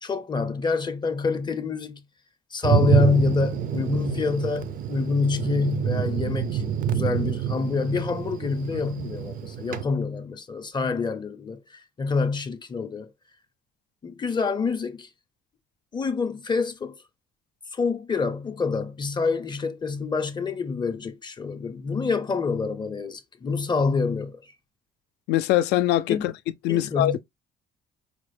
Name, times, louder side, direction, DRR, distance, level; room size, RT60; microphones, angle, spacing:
voice 1, 0.0-2.0 2.5-13.1 14.0-15.1 15.9-17.0 17.7-24.5 26.1-26.2 26.7-27.2, left 4 dB, 25° left, 0.5 m, -27 dB
Thunder, 2.6-9.8, right 8 dB, 55° right, 0.5 m, -27 dB
voice 2, 25.3-26.3 26.6-27.2, left 14 dB, 85° left, 0.4 m, -22 dB
4.9 x 2.0 x 3.2 m
cardioid pair, 110°, 17 cm